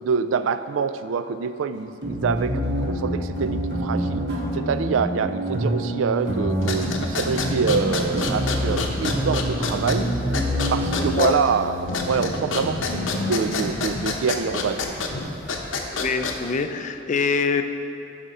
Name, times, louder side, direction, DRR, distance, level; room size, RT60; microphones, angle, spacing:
voice 1, 0.0-4.2 4.5-10.4 10.7-15.0, right 5 dB, 80° right, 11 dB, 0.4 m, -26 dB
sound 1, 2.0-14.8, equal, 60° right, 1.3 m, -28 dB
sound 2, 6.5-16.6, left 3 dB, 85° left, 0.8 m, -28 dB
voice 2, 11.0-11.4 15.9-17.6, left 5 dB, 40° left, 8 dB, 0.4 m, -24 dB
12.0 x 5.0 x 4.2 m, 3.0 s
head